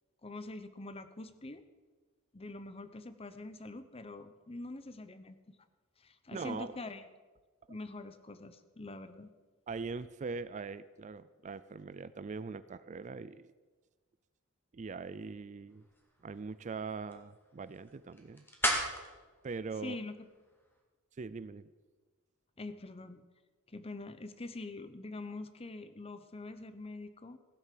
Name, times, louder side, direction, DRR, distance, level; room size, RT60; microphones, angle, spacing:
voice 1, 0.2-1.6 2.3-5.4 6.0-7.0 7.7-9.3 19.8-20.1 22.6-23.2 23.7-27.4, left 2 dB, 25° left, 11 dB, 0.8 m, -44 dB
voice 2, 6.3-6.7 9.7-13.5 14.7-15.9 16.2-18.5 19.4-20.0 21.2-21.7, right 4 dB, 35° right, 15 dB, 0.4 m, -41 dB
sound 1, 15.7-20.8, equal, 10° left, 2.0 m, -39 dB
15.5 x 8.1 x 7.5 m, 1.3 s
head